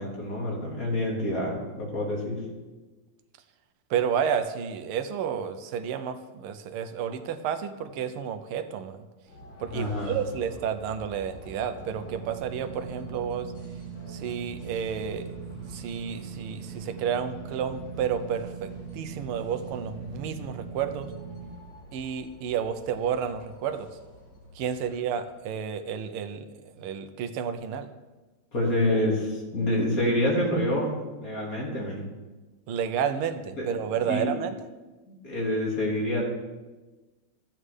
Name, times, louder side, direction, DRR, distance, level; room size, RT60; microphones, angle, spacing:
voice 1, 0.0-2.4 9.7-10.1 28.5-32.1 33.6-33.7 34.1-34.3 35.1-36.2, left 1 dB, 40° left, -3 dB, 2.5 m, -27 dB
voice 2, 3.9-9.0 9.6-13.5 14.1-21.1 21.9-23.9 24.5-27.9 32.7-34.6, right 7 dB, 85° right, 9 dB, 1.6 m, -31 dB
sound 1, 9.3-25.5, equal, 65° left, 4.2 m, -48 dB
sound 2, 11.7-21.5, right 7 dB, 50° right, 2.1 m, -41 dB
14.5 x 8.6 x 3.3 m, 1.2 s
omnidirectional pair, 2.3 m